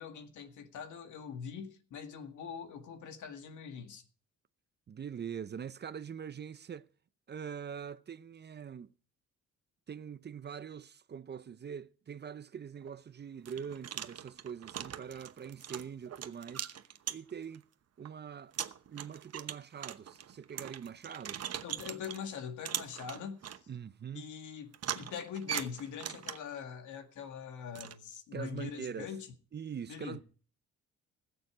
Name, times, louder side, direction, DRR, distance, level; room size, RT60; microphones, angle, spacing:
voice 1, 0.0-4.0 21.6-23.6 24.1-29.3 29.9-30.2, left 7 dB, 75° left, 2.0 m, -43 dB
voice 2, 4.9-6.9 7.3-8.9 9.9-16.7 17.1-17.6 18.0-18.5 18.9-21.4 23.7-24.3 28.3-29.1 29.5-30.2, right 7 dB, 35° right, 0.6 m, -43 dB
sound 1, 12.8-12.9 13.4-17.6 18.0-18.1 18.5-22.2 22.6-23.6 24.7-26.6 27.7-27.9, right 9 dB, 55° right, 1.0 m, -41 dB
20.0 x 7.0 x 4.8 m
cardioid pair, 90°, 30 cm